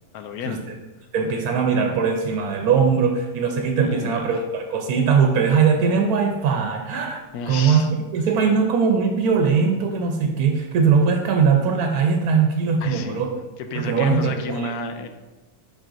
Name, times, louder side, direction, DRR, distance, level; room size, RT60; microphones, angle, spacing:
voice 1, 0.1-0.7 3.7-4.4 7.3-7.9 12.8-13.2 13.6-15.1, left 5 dB, 80° left, 8 dB, 1.1 m, -30 dB
voice 2, 1.1-7.8 8.1-13.4 13.7-14.7, right 6 dB, 85° right, 3 dB, 1.2 m, -20 dB
7.4 x 5.2 x 2.6 m, 1.1 s
omnidirectional pair, 1.6 m